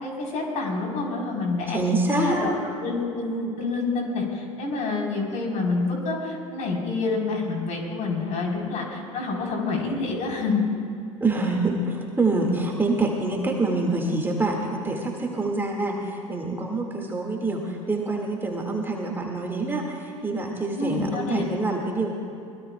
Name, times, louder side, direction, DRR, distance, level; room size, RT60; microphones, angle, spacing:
voice 1, 0.0-2.5 2.8-10.6 20.7-21.4, left 3 dB, 45° left, -1 dB, 4.4 m, -27 dB
voice 2, 1.7-2.5 11.2-22.1, right 2 dB, 15° right, 0 dB, 2.2 m, -26 dB
24.0 x 20.5 x 2.4 m, 2.6 s
hypercardioid pair, 80°, 17 cm